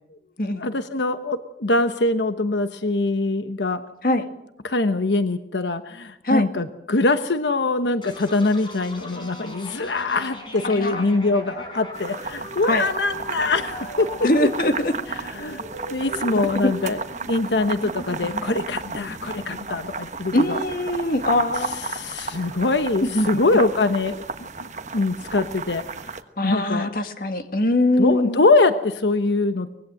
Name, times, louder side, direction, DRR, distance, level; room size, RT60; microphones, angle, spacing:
voice 1, 0.6-3.8 4.6-14.5 15.4-15.6 15.9-17.0 17.3-20.6 21.6-24.2 24.6-24.7 24.9-25.8 26.4-26.9 28.0-29.7, left 2 dB, 90° left, 9 dB, 1.1 m, -23 dB
sound 1, 8.0-21.6, left 1 dB, 30° left, 5.6 m, -39 dB
voice 2, 10.6-11.0 12.7-12.9 14.2-14.9 16.3-16.5 20.3-21.8 23.0-23.4 26.4-28.4, left 1 dB, 55° left, 8 dB, 2.0 m, -22 dB
sound 2, 11.9-26.2, right 4 dB, 40° right, 1.3 m, -33 dB
24.5 x 20.0 x 7.8 m, 0.83 s
head